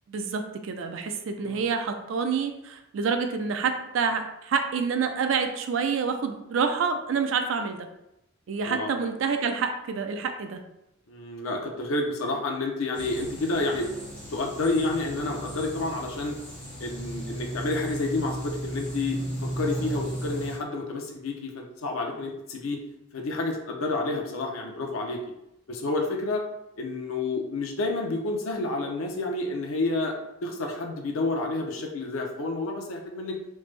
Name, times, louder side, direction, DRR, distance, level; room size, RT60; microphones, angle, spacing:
voice 1, 0.1-7.9 8.5-10.6, right 5 dB, 65° right, 6 dB, 0.4 m, -28 dB
voice 2, 8.6-9.0 11.1-13.9 14.3-16.4 16.8-22.8 23.1-25.2 25.7-26.4 26.8-30.1 30.4-33.4, left 2 dB, 90° left, 2 dB, 0.5 m, -29 dB
sound 1, 12.9-20.6, right 1 dB, 5° left, 0.8 m, -36 dB
3.2 x 2.0 x 3.2 m, 0.85 s
head